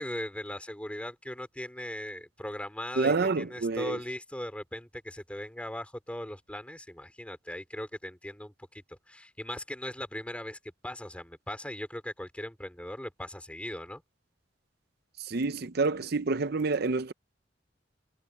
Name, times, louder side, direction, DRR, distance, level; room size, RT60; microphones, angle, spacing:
voice 1, 0.0-14.0, left 1 dB, 5° left, 3.5 m, -39 dB
voice 2, 3.0-4.0 15.3-17.1, right 3 dB, 55° right, 0.7 m, -28 dB
head